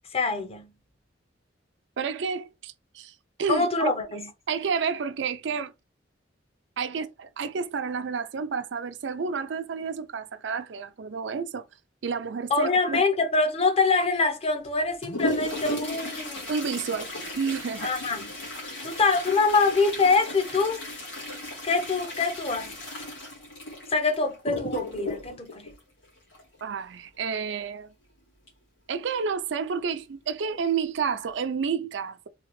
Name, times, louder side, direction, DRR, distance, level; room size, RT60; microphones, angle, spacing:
voice 1, 0.1-0.7 3.5-4.3 12.5-16.5 17.8-18.3 18.8-20.8 21.6-22.8 23.9-25.7, left 4 dB, 35° left, 0.7 m, -25 dB
voice 2, 2.0-3.9 4.5-5.7 6.8-11.6 12.0-13.0 16.5-17.1 17.4-17.9 26.6-27.9 28.9-32.3, right 6 dB, 70° right, 0.4 m, -30 dB
Toilet flush, 14.6-26.6 28.5-28.6 28.9-29.0 29.8-29.9 30.5-30.8 31.2-31.4, left 1 dB, 90° left, 2.0 m, -35 dB
3.7 x 2.8 x 3.1 m
head